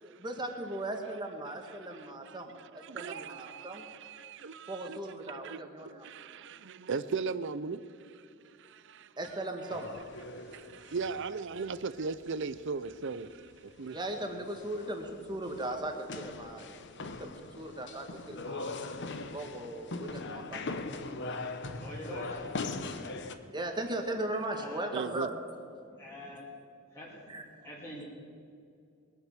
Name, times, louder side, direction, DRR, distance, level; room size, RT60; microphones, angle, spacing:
voice 1, 0.0-3.8 4.7-6.1 9.2-9.9 13.9-18.7 19.3-20.9 23.2-26.0 27.3-27.4, right 1 dB, 20° right, 3 dB, 1.6 m, -38 dB
voice 2, 1.9-5.0 5.3-7.8 8.6-9.1 10.5-14.0 24.9-25.3, right 4 dB, 60° right, 15 dB, 0.6 m, -38 dB
sound 1, 9.7-12.2 12.6-12.7 12.8-13.2 13.5-13.6 14.0-23.3, left 3 dB, 55° left, 0.9 m, -41 dB
voice 3, 21.7-22.6 24.5-25.0 26.0-26.5 26.9-27.2 27.6-28.0, left 1 dB, 15° left, -6 dB, 2.6 m, -45 dB
21.5 x 8.2 x 6.6 m, 2.5 s
head